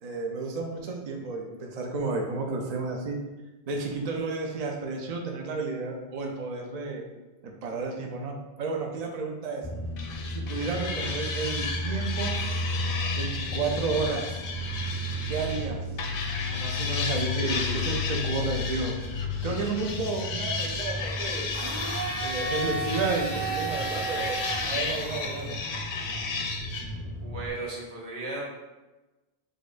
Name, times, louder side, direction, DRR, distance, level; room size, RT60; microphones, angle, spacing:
voice 1, 0.0-3.2 3.7-7.0 7.4-9.6 10.4-12.3 13.1-14.2 15.3-15.8 16.5-18.9 19.4-21.5 22.2-24.4 24.7-25.5, right 4 dB, 50° right, 1 dB, 0.5 m, -32 dB
sound 1, 9.6-27.5, left 1 dB, 30° left, 0.5 m, -34 dB
sound 2, 10.0-15.7 16.0-26.8, left 4 dB, 65° left, 0.7 m, -34 dB
voice 2, 17.4-17.9 27.2-28.6, right 2 dB, 80° right, -3 dB, 1.2 m, -36 dB
Domestic sounds home sounds, 21.5-25.6, right 2 dB, 20° right, 0.8 m, -33 dB
6.5 x 2.5 x 2.4 m, 1.1 s
omnidirectional pair, 1.1 m